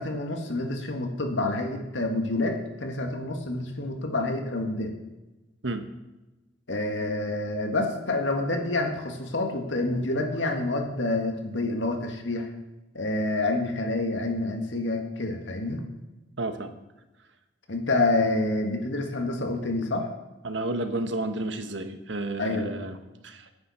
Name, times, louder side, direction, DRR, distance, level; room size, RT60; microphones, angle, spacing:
voice 1, 0.0-4.9 6.7-12.5 12.9-15.8 17.7-20.1 22.4-22.9, left 2 dB, 90° left, 3 dB, 2.0 m, -28 dB
voice 2, 16.4-16.8 20.4-23.0 23.2-23.4, right 2 dB, 80° right, 8 dB, 1.2 m, -31 dB
16.0 x 9.5 x 4.4 m, 1.1 s
head